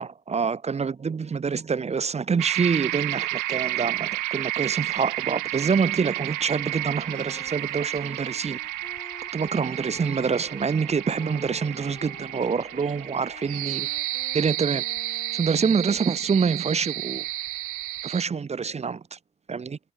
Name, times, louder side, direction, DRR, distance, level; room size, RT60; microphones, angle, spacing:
voice 1, 0.0-8.6 9.3-13.9 14.3-14.8 15.3-17.2 18.0-19.2 19.5-19.8, right 5 dB, 20° right, 0.5 m, -26 dB
sound 1, 1.0-18.7, left 9 dB, 55° left, 2.3 m, -53 dB
sound 2, 2.4-18.2, right 18 dB, 80° right, 0.6 m, -31 dB
Wind instrument woodwind instrument, 6.5-10.7 11.2-12.6 13.0-16.2, left 3 dB, 20° left, 3.1 m, -49 dB
cardioid pair, 90°, 30 cm